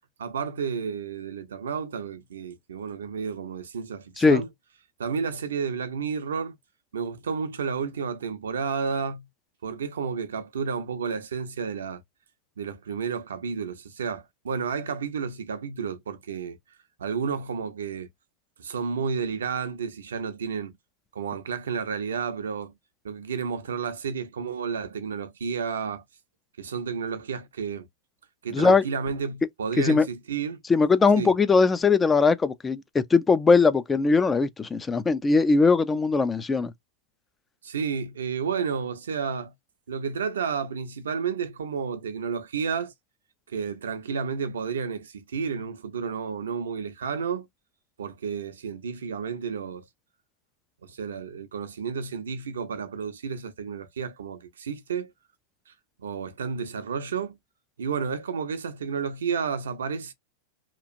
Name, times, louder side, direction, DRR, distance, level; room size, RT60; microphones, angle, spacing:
voice 1, 0.2-4.5 5.0-6.5 6.9-9.2 9.6-12.0 12.6-16.6 17.0-18.1 18.6-20.7 21.1-22.7 23.0-26.0 26.6-27.9 28.4-30.6 31.2-31.3 37.6-39.5 39.9-42.9 43.5-47.5 48.0-49.9 50.8-55.1 55.7-55.8 56.0-57.4 57.8-60.1, right 6 dB, 75° right, 0.6 m, -31 dB
voice 2, 28.5-28.8 29.8-30.0 30.7-36.7, left 4 dB, 15° left, 0.4 m, -20 dB
2.9 x 2.4 x 2.5 m
hypercardioid pair, 100°, 0 cm